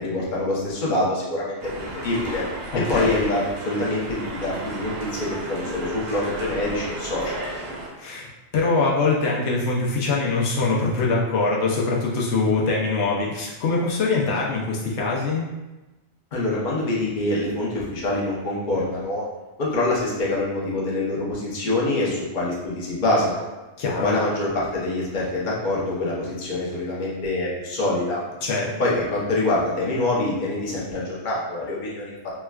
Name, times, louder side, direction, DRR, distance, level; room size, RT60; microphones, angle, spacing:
voice 1, 0.0-1.6 1.9-2.4 2.7-7.6 16.3-19.2 19.6-23.5 24.0-28.2 28.8-32.1, left 2 dB, 50° left, -5 dB, 0.9 m, -25 dB
sound 1, 1.6-7.9, right 2 dB, 65° right, 0.9 m, -33 dB
voice 2, 2.7-3.2 8.0-8.3 8.5-15.5 23.8-24.1 28.4-28.7, left 3 dB, 80° left, -4 dB, 0.9 m, -23 dB
4.3 x 2.2 x 2.2 m, 1.1 s
omnidirectional pair, 1.1 m